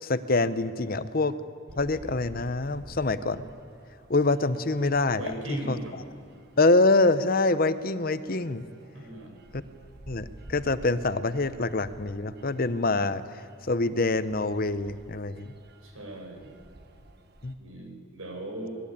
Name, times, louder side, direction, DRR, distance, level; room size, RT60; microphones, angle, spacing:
voice 1, 0.0-1.3 1.8-3.5 4.1-5.3 5.7-5.8 6.6-8.7 9.5-9.6 10.1-13.4 13.7-15.5 17.4-17.6, left 2 dB, 45° left, 13 dB, 0.8 m, -25 dB
sound 1, 1.7-17.5, right 1 dB, 50° right, 1.6 m, -52 dB
voice 2, 5.2-6.0 8.9-9.4 15.8-16.5 17.6-18.7, right 1 dB, 80° right, 3 dB, 5.5 m, -38 dB
25.5 x 20.0 x 8.6 m, 2.5 s
head